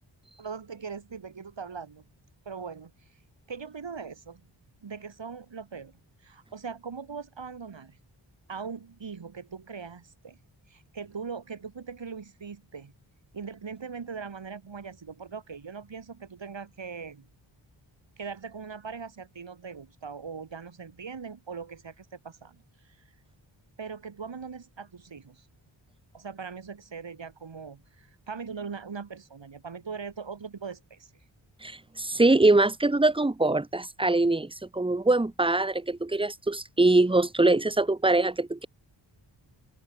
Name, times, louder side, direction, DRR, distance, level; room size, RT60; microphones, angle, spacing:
voice 1, 0.4-2.0 2.4-2.9 3.5-4.4 4.8-5.9 6.2-8.0 8.5-10.4 10.7-12.9 13.3-17.3 18.2-23.0 23.8-25.5 26.1-31.1, right 5 dB, 65° right, 4.7 m, -40 dB
voice 2, 31.6-38.7, right 2 dB, 10° right, 1.0 m, -23 dB
open air
wide cardioid pair, 70°, 47 cm